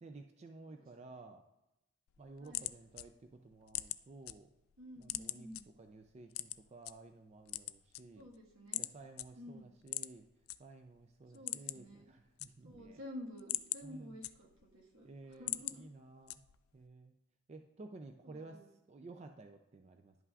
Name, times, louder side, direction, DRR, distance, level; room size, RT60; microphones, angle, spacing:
voice 1, 0.0-1.4 2.2-4.5 5.0-5.5 5.8-8.3 8.8-10.3 10.6-13.0 13.8-14.2 15.0-16.4 16.7-17.1 17.5-20.1, right 3 dB, 30° right, 6 dB, 0.3 m, -54 dB
sound 1, 2.1-4.3 4.7-5.6 6.3-6.9 7.4-8.4 8.7-8.9 9.2-9.3 9.8-10.6 10.9-11.0 11.3-11.9 12.2-12.9 13.3-14.7 15.1-15.8 16.3-16.7, left 17 dB, 85° left, 0.3 m, -40 dB
voice 2, 4.8-5.6 8.2-8.8 9.4-9.7 11.3-12.1 12.6-15.9 18.2-18.7, left 1 dB, 75° right, -2 dB, 1.6 m, -51 dB
10.5 x 5.7 x 2.4 m, 0.93 s
head